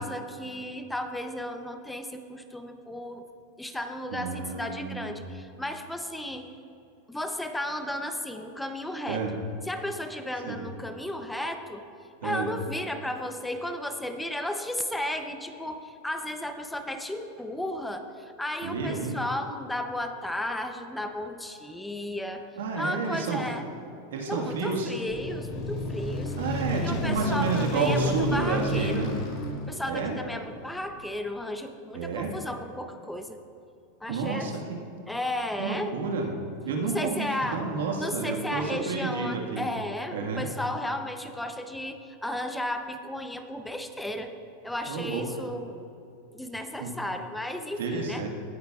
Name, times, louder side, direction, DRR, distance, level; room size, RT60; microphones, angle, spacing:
voice 1, 0.0-3.3 3.6-6.5 7.1-9.4 9.7-11.8 12.2-22.4 22.7-23.7 24.3-29.1 29.7-33.4 34.0-34.5 35.1-35.9 36.9-37.6 38.0-44.3 44.6-45.8 46.3-48.2, left 1 dB, 5° left, 6 dB, 0.7 m, -34 dB
voice 2, 4.1-5.3 9.1-9.3 10.5-10.6 12.2-12.5 18.6-19.2 22.6-23.4 24.1-24.9 26.4-29.1 29.9-30.2 31.9-32.3 34.1-34.8 35.6-36.3 36.6-39.6 40.1-40.5 44.8-45.2 46.8-46.9 47.8-48.3, right 4 dB, 85° right, 1 dB, 1.6 m, -30 dB
sound 1, 25.1-30.5, left 1 dB, 55° left, 2.0 m, -31 dB
18.0 x 8.6 x 2.4 m, 2.6 s
supercardioid pair, 125°, 0 cm